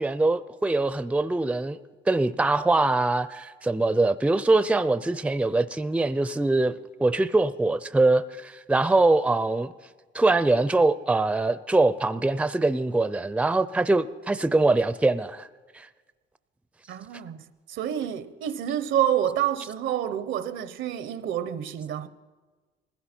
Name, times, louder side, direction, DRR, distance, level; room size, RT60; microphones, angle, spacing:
voice 1, 0.0-1.8 2.1-9.7 10.1-15.5 15.7-15.9, right 2 dB, 5° right, 0.5 m, -23 dB
voice 2, 16.9-22.1, right 10 dB, 75° right, 0.8 m, -28 dB
20.0 x 16.0 x 4.4 m
cardioid pair, 90°, 20 cm